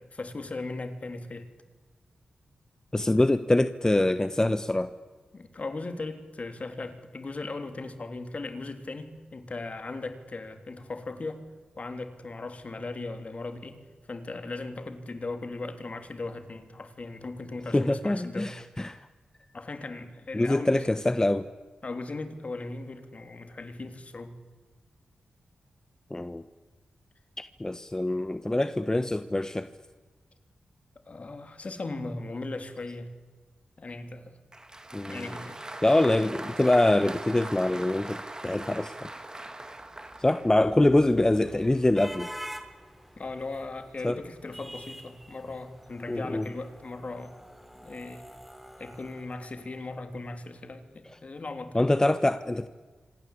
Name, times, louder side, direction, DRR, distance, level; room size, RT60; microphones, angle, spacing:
voice 1, 0.0-1.5 5.3-11.5 11.8-13.8 14.1-18.8 19.5-20.9 21.8-24.4 31.1-33.1 33.8-34.4 35.1-35.6 39.5-39.6 43.2-47.4 47.8-48.3 48.8-51.9, left 3 dB, 50° left, 8 dB, 3.5 m, -38 dB
voice 2, 2.9-4.9 17.7-19.0 20.3-21.5 26.1-26.4 27.4-29.7 34.9-35.3 35.8-39.1 40.2-42.3 44.0-44.2 46.1-46.4 51.7-52.7, left 1 dB, 20° left, 11 dB, 1.2 m, -24 dB
Applause, 34.5-40.5, right 2 dB, 25° right, 3.2 m, -41 dB
sound 1, 39.9-50.2, equal, 5° right, 3.2 m, -47 dB
26.0 x 26.0 x 8.6 m, 1.4 s
cardioid pair, 50°, 3 cm